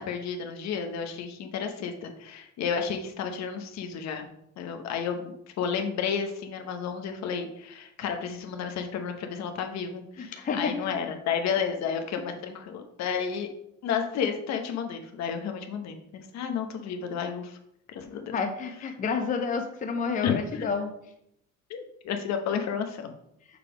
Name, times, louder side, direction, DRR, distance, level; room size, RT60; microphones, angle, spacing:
voice 1, 0.1-4.3 4.6-13.5 13.8-17.6 17.9-18.2 20.2-20.7 21.7-23.1, left 7 dB, 60° left, 5 dB, 1.0 m, -32 dB
voice 2, 10.2-10.9 18.3-20.9, left 5 dB, 25° left, 5 dB, 0.6 m, -30 dB
6.6 x 3.6 x 4.9 m, 0.76 s
cardioid pair, 130°, 30 cm